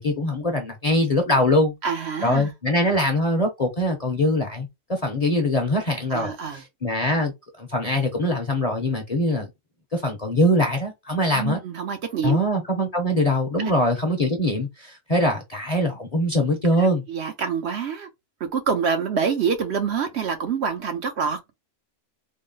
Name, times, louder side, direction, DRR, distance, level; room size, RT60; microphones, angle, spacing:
voice 1, 0.0-1.7 2.2-6.3 6.8-7.3 7.6-9.5 9.9-11.6 12.2-17.0, left 1 dB, 35° left, 0.7 m, -22 dB
voice 2, 1.8-2.5 6.1-6.6 11.3-12.4 13.6-13.8 16.8-18.1 18.4-21.4, right 6 dB, 60° right, 0.9 m, -26 dB
3.8 x 2.0 x 3.8 m
omnidirectional pair, 1.4 m